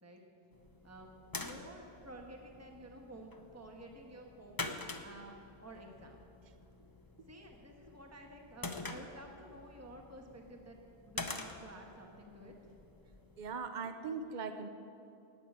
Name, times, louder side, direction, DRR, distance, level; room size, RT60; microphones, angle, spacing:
sound 1, 0.5-13.6, left 3 dB, 20° left, 0.7 m, -47 dB
voice 1, 0.8-4.8 5.0-6.2 7.3-12.7, right 1 dB, 15° right, 1 dB, 1.3 m, -52 dB
voice 2, 13.4-14.7, right 5 dB, 45° right, 9 dB, 0.9 m, -40 dB
18.0 x 6.1 x 8.7 m, 2.8 s
omnidirectional pair, 1.2 m